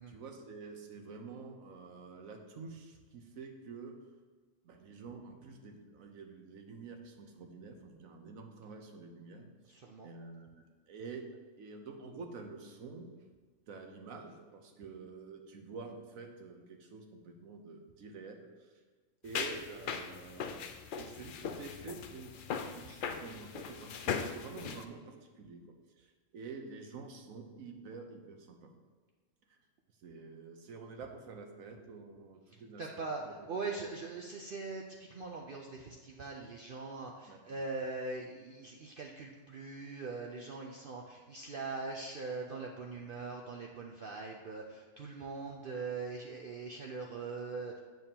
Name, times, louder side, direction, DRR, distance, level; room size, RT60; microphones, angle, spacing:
voice 1, 0.1-4.0 4.6-9.8 10.0-11.2 11.6-13.1 13.7-18.7 19.2-20.6 21.0-22.4 22.7-25.6 26.0-28.7 30.0-33.3 33.7-33.9 37.3-37.4, right 4 dB, 90° right, 4 dB, 1.3 m, -48 dB
voice 2, 9.7-10.1 32.8-34.8 35.1-47.8, right 3 dB, 55° right, 0 dB, 0.7 m, -41 dB
sound 1, 19.3-24.8, left 6 dB, 65° left, 0.5 m, -39 dB
8.1 x 7.1 x 2.9 m, 1.4 s
omnidirectional pair, 1.4 m